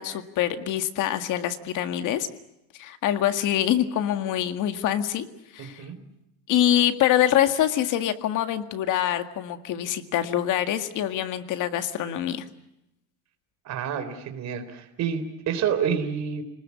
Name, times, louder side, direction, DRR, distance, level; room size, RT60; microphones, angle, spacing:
voice 1, 0.0-2.3 2.8-5.3 5.5-5.8 6.5-12.4, left 11 dB, 45° left, 9 dB, 2.0 m, -25 dB
voice 2, 5.6-6.0 13.6-16.4, right 7 dB, 40° right, 8 dB, 3.9 m, -28 dB
29.0 x 20.0 x 8.5 m, 0.89 s
cardioid pair, 160°, 41 cm